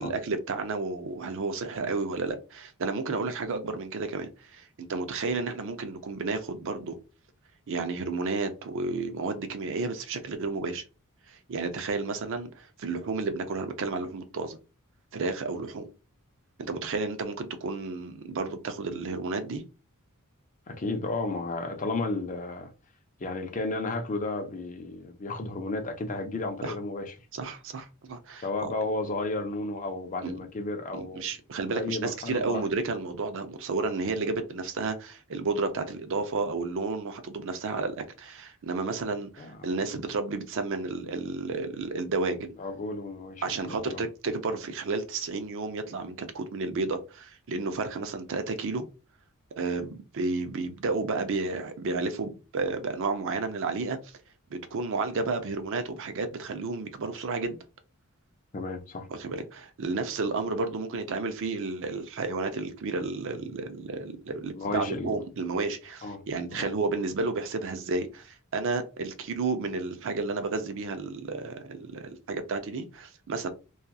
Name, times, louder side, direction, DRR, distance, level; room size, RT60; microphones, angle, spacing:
voice 1, 0.0-7.0 7.7-10.8 11.3-14.6 15.1-15.9 16.6-19.6 26.6-26.8 27.3-28.7 30.2-30.4 30.9-42.6 43.4-48.9 49.6-54.0 54.5-57.6 59.1-73.5, right 3 dB, 60° right, 0.5 m, -32 dB
voice 2, 20.7-22.7 23.2-27.1 28.4-31.3 31.7-32.6 39.4-39.6 42.6-44.0 58.5-59.1 64.6-65.1 66.0-66.2 66.5-66.7, left 2 dB, 35° left, 0.5 m, -33 dB
2.8 x 2.4 x 2.3 m
head